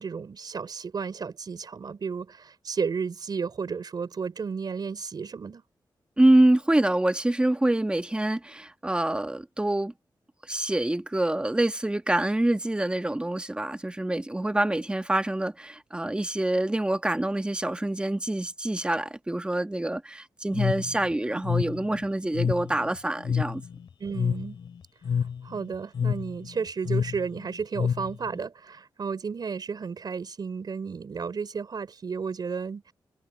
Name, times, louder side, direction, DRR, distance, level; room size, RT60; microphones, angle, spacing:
voice 1, 0.0-5.6 24.0-24.6 25.4-32.9, right 5 dB, 60° right, 4.2 m, -33 dB
voice 2, 6.2-9.9 10.5-23.6, right 1 dB, 10° right, 1.4 m, -26 dB
sound 1, 20.5-28.4, left 7 dB, 80° left, 2.9 m, -29 dB
wide cardioid pair, 100°, 8 cm